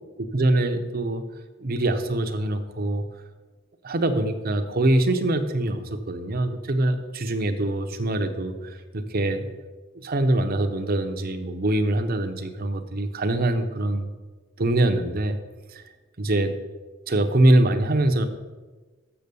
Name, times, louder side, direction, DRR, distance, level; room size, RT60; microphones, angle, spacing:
voice 1, 0.2-1.2 1.6-3.0 3.8-9.5 9.9-14.1 14.6-15.4 15.7-15.8 16.2-16.5 17.1-18.3, right 1 dB, 50° right, 8 dB, 0.8 m, -23 dB
7.1 x 6.9 x 6.9 m, 1.3 s
head